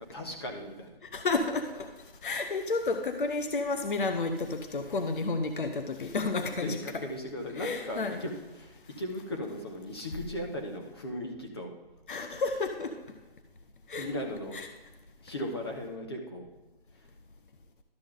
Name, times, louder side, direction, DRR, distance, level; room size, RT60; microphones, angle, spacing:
voice 1, 0.1-1.0 6.6-11.7 14.0-14.6 15.2-16.5 16.9-17.1, left 1 dB, 25° left, 2 dB, 1.2 m, -37 dB
voice 2, 1.1-1.9 2.2-6.8 7.5-8.2 12.1-12.9 13.9-14.1 14.5-14.7, left 3 dB, 60° left, 7 dB, 0.9 m, -31 dB
13.0 x 6.3 x 3.8 m, 1.2 s
hypercardioid pair, 175°, 30 cm